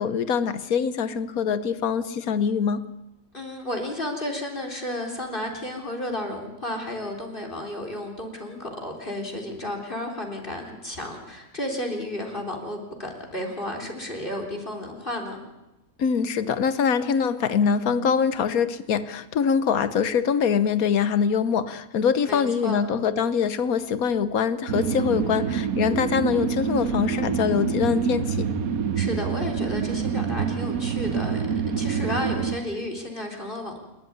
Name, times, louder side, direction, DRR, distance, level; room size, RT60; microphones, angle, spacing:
voice 1, 0.0-2.8 16.0-28.5, left 6 dB, 90° left, 12 dB, 1.5 m, -24 dB
voice 2, 3.3-15.4 22.2-22.8 28.9-31.4 31.8-33.8, left 1 dB, 35° left, 2 dB, 4.0 m, -32 dB
sound 1, 24.7-32.6, right 6 dB, 85° right, 1.5 m, -26 dB
29.0 x 13.5 x 9.8 m, 0.97 s
omnidirectional pair, 1.5 m